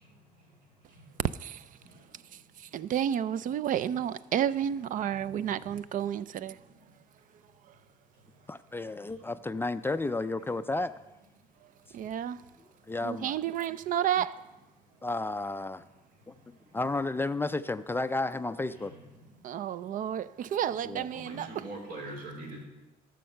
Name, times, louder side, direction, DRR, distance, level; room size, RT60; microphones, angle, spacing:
voice 1, 1.3-1.7 2.3-6.6 7.7-7.8 11.9-12.4 13.0-14.4 19.4-21.6, right 10 dB, 50° right, 0.4 m, -31 dB
voice 2, 8.5-11.0 12.9-13.3 15.0-15.8 16.7-18.9 20.8-21.0, left 2 dB, 15° left, 0.3 m, -32 dB
voice 3, 21.1-22.7, right 2 dB, 70° right, 3.6 m, -41 dB
12.5 x 6.5 x 6.6 m
cardioid pair, 110°, 17 cm